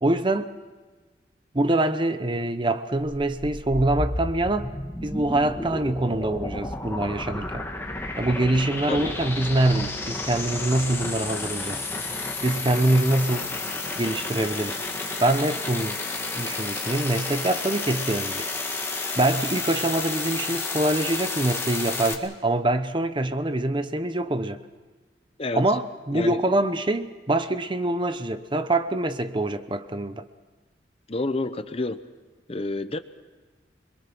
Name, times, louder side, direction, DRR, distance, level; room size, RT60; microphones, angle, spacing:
voice 1, 0.0-0.5 1.5-4.7 5.0-7.6 8.2-11.8 12.4-13.5 14.0-14.8 15.2-16.0 16.4-18.5 19.1-24.6 25.5-30.2, right 1 dB, 25° right, 0.9 m, -24 dB
sound 1, 3.0-22.1, left 3 dB, 15° left, 1.8 m, -31 dB
voice 2, 31.1-32.0 32.5-33.0, left 2 dB, 35° left, 0.9 m, -29 dB
26.0 x 22.5 x 6.1 m
head